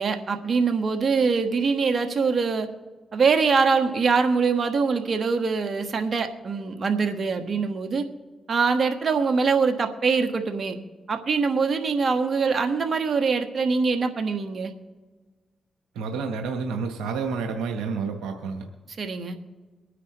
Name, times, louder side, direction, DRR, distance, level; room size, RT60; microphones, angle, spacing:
voice 1, 0.0-2.7 3.1-8.0 8.5-10.8 11.1-14.7 19.0-19.4, right 5 dB, 60° right, 6 dB, 1.5 m, -23 dB
voice 2, 15.9-18.7, right 5 dB, 90° right, 3 dB, 1.0 m, -29 dB
23.0 x 9.7 x 3.1 m, 1.3 s
supercardioid pair, 45°, 0 cm